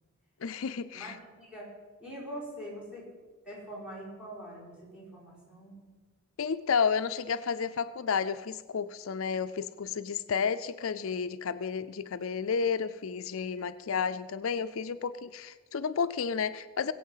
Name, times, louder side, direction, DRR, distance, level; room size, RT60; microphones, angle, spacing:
voice 1, 0.4-1.1 6.4-16.9, left 6 dB, 70° left, 12 dB, 0.5 m, -31 dB
voice 2, 0.9-1.7 2.0-3.1 3.4-5.8, equal, 5° right, -5 dB, 5.3 m, -43 dB
20.5 x 8.4 x 5.6 m, 1.3 s
head